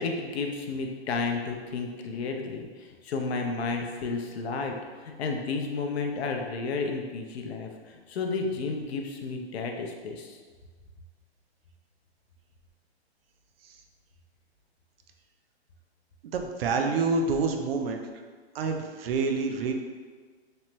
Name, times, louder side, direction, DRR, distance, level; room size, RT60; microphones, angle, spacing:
voice 1, 0.0-10.4, left 4 dB, 70° left, 3 dB, 0.5 m, -32 dB
voice 2, 16.2-18.0 18.5-19.7, right 4 dB, 60° right, 4 dB, 0.4 m, -27 dB
3.1 x 2.1 x 2.9 m, 1.5 s
hypercardioid pair, 135°, 33 cm